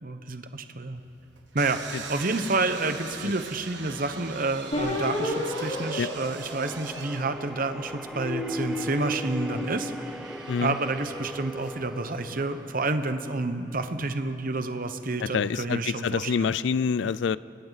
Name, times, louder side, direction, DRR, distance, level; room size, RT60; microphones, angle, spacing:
voice 1, 0.0-1.0 1.5-9.9 10.6-16.5 17.0-17.1, right 3 dB, 50° right, 9 dB, 1.1 m, -29 dB
sound 1, 0.9-12.2, right 5 dB, 70° right, 1.6 m, -44 dB
sound 2, 3.7-13.8, equal, 5° right, 0.5 m, -42 dB
sound 3, 4.7-7.4 8.0-10.5, left 1 dB, 35° left, 4.0 m, -33 dB
voice 2, 15.2-17.4, left 6 dB, 75° left, 18 dB, 0.4 m, -27 dB
29.5 x 23.0 x 4.1 m, 2.9 s
head